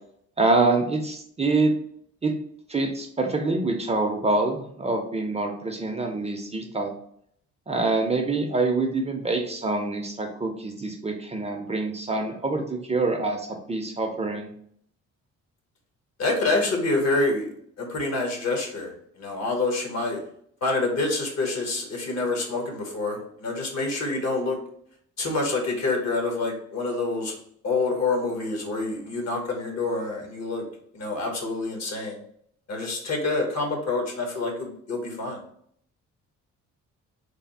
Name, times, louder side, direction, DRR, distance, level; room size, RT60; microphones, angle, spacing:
voice 1, 0.4-1.7 2.2-2.4 2.7-6.9 7.7-14.5, right 3 dB, 20° right, 3 dB, 0.5 m, -25 dB
voice 2, 16.2-17.5 17.8-18.9 19.2-20.2 20.6-24.6 25.2-27.4 27.6-30.6 30.9-32.2 32.7-35.4, left 3 dB, 60° left, 2 dB, 1.2 m, -27 dB
3.4 x 2.0 x 4.0 m, 0.66 s
cardioid pair, 90°, 30 cm